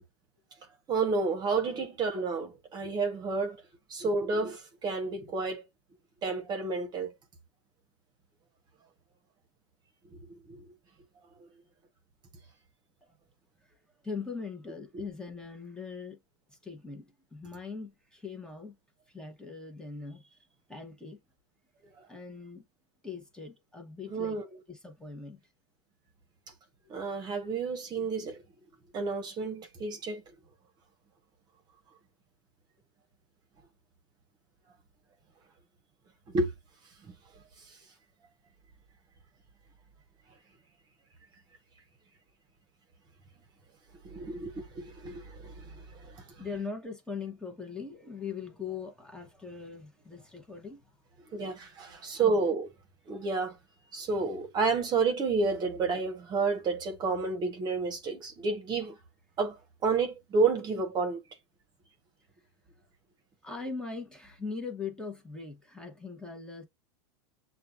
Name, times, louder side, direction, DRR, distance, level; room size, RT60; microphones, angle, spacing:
voice 1, 0.9-3.6 3.9-5.6 6.2-7.1 10.3-10.6 11.4-11.5 24.1-24.5 26.9-28.4 28.9-30.2 36.3-36.5 44.0-46.2 51.3-52.7 53.1-53.6 53.9-59.0 59.4-61.2, right 4 dB, 30° right, 1.1 m, -30 dB
voice 2, 14.0-16.2 16.5-18.7 19.1-21.2 22.1-22.6 23.0-24.4 24.7-25.4 46.4-50.8 52.2-52.4 63.4-66.6, left 5 dB, 5° left, 1.0 m, -41 dB
6.6 x 2.4 x 2.4 m
supercardioid pair, 125°, 14 cm